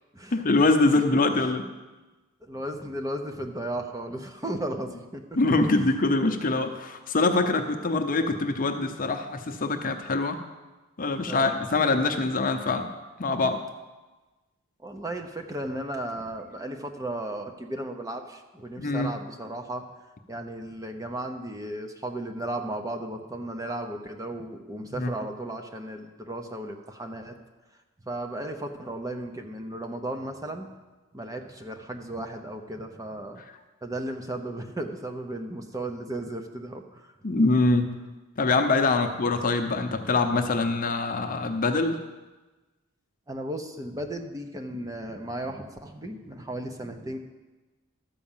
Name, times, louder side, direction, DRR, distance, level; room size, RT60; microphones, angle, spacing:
voice 1, 0.3-1.6 5.4-10.4 11.0-12.9 13.2-13.6 18.8-19.1 24.9-25.1 37.2-38.0 38.4-42.0, left 3 dB, 40° left, 6 dB, 0.7 m, -24 dB
voice 2, 0.9-1.2 2.4-5.3 11.3-11.6 14.8-19.9 20.3-27.4 28.0-30.7 31.1-33.4 33.8-37.1 39.0-39.1 43.3-47.2, right 1 dB, 15° right, 4 dB, 0.7 m, -35 dB
12.5 x 4.9 x 7.3 m, 1.2 s
head